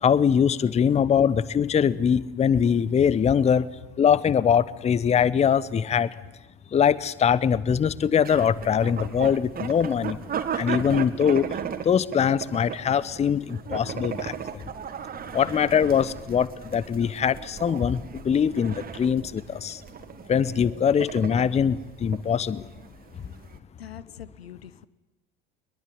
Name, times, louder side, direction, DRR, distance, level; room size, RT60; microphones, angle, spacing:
voice 1, 0.0-3.7 4.0-6.1 6.7-10.2 10.5-11.5 11.8-14.6 15.3-19.8 20.3-22.6, left 7 dB, 20° left, 20 dB, 0.9 m, -22 dB
sound 1, 8.2-23.6, right 8 dB, 30° right, 2.0 m, -36 dB
voice 2, 23.8-24.9, left 10 dB, 75° left, 17 dB, 1.2 m, -43 dB
23.0 x 21.5 x 9.5 m, 1.0 s
figure-of-eight pair, 70°, 31 cm